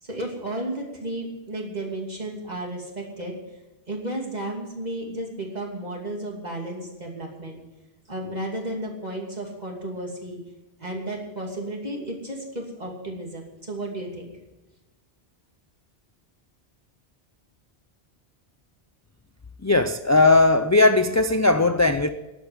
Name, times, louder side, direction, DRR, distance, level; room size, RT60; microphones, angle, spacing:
voice 1, 0.0-3.4 3.9-7.6 8.1-10.4 10.8-14.3, right 1 dB, 40° right, 2.9 m, -33 dB
voice 2, 19.6-22.1, left 2 dB, 30° left, 0.3 m, -18 dB
11.5 x 8.4 x 9.6 m
omnidirectional pair, 1.1 m